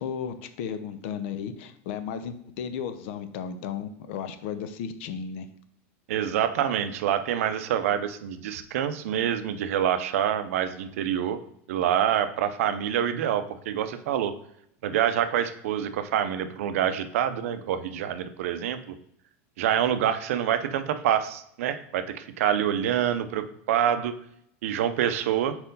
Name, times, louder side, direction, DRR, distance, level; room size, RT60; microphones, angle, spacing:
voice 1, 0.0-5.5, left 7 dB, 55° left, 10 dB, 0.6 m, -34 dB
voice 2, 6.1-11.4 11.7-14.3 14.8-18.9 19.6-24.1 24.6-25.6, right 10 dB, 80° right, 10 dB, 0.5 m, -26 dB
4.4 x 4.3 x 5.2 m, 0.73 s
supercardioid pair, 170°, 7 cm